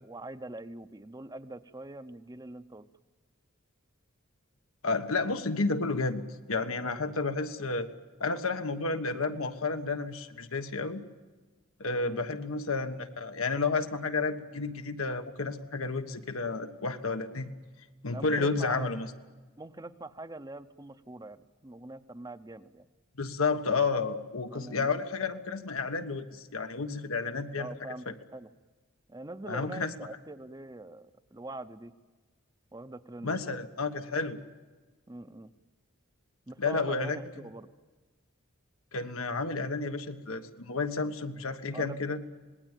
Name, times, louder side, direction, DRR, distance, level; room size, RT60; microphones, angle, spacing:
voice 1, 0.0-2.9 12.0-12.3 18.1-18.9 19.6-22.9 24.5-24.9 27.5-28.5 29.1-31.9 32.7-33.6 35.1-35.5 36.5-37.7 41.7-42.0, right 2 dB, 20° right, 11 dB, 0.7 m, -43 dB
voice 2, 4.8-6.2 6.5-7.9 8.2-11.0 11.8-17.5 18.0-19.1 23.2-27.7 28.1-28.2 29.5-29.9 33.2-34.4 36.6-37.2 38.9-42.2, left 4 dB, 90° left, 7 dB, 1.4 m, -31 dB
26.5 x 19.5 x 9.1 m, 1.3 s
head